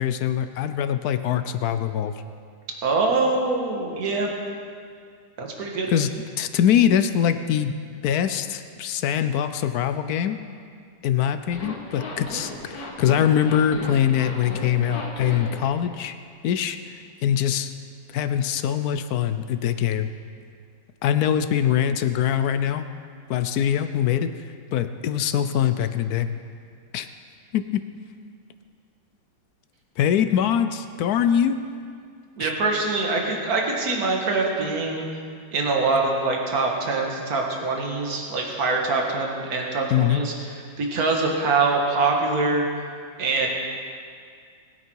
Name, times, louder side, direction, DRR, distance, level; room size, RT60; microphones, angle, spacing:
voice 1, 0.0-2.1 5.9-6.1 6.4-7.7 8.0-10.4 11.0-16.1 16.4-17.7 18.1-20.1 21.0-22.9 23.3-26.3 26.9-27.1 27.5-27.8 30.0-31.6 32.4-32.5 39.9-40.2, left 9 dB, 70° left, 10 dB, 0.9 m, -23 dB
voice 2, 2.8-4.3 5.4-5.9 32.4-35.0 35.5-40.3 40.8-42.6 43.2-43.5, right 3 dB, 50° right, 0 dB, 2.0 m, -24 dB
Zipper (clothing), 11.4-15.7, left 1 dB, 50° left, 2.1 m, -35 dB
20.5 x 9.0 x 4.6 m, 2.2 s
omnidirectional pair, 2.1 m